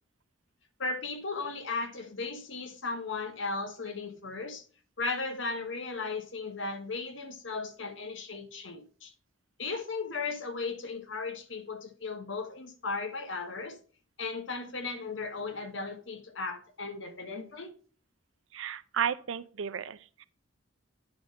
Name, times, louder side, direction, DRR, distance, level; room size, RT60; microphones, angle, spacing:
voice 1, 0.8-4.6 5.0-9.1 9.6-13.8 14.2-17.7, left 3 dB, 70° left, 1.1 m, -36 dB
voice 2, 18.5-20.2, right 8 dB, 80° right, 0.5 m, -33 dB
9.6 x 3.6 x 5.3 m
head